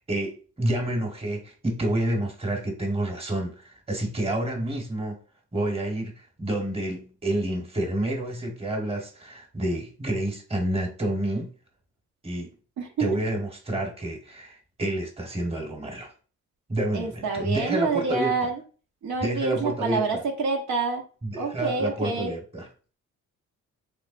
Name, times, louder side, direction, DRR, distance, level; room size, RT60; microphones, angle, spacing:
voice 1, 0.0-5.2 5.5-6.1 6.4-11.5 12.2-12.5 13.0-16.1 16.7-18.3 19.2-20.2 21.2-22.7, right 1 dB, 20° right, 1.2 m, -29 dB
voice 2, 12.8-13.2 16.9-18.6 19.0-21.0 21.4-22.3, right 4 dB, 70° right, 0.9 m, -27 dB
3.6 x 3.2 x 2.5 m
cardioid pair, 90°, 30 cm